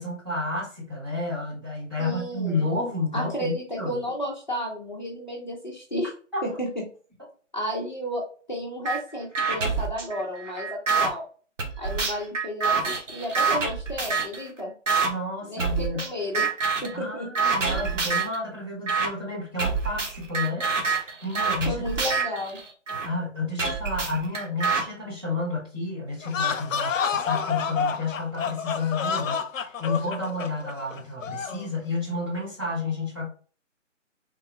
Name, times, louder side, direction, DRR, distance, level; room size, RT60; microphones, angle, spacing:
voice 1, 0.0-4.0 6.3-6.4 15.0-16.0 16.9-20.7 21.0-21.8 23.0-33.3, left 2 dB, 20° right, -8 dB, 1.1 m, -31 dB
voice 2, 2.0-2.6 3.1-6.1 6.4-6.8 7.5-11.2 11.8-14.7 15.4-16.5 16.8-17.3 21.7-22.6, equal, 35° left, -2 dB, 0.6 m, -32 dB
sound 1, 8.8-9.0 9.3-11.1 11.6-14.4 14.9-15.1 15.6-16.1 16.3-16.9 17.3-18.4 18.9-19.1 19.6-23.1 23.6-24.8, right 5 dB, 75° right, 1.1 m, -26 dB
sound 2, 26.2-31.7, left 6 dB, 85° left, 0.6 m, -29 dB
3.5 x 2.2 x 3.2 m, 0.39 s
hypercardioid pair, 175°, 38 cm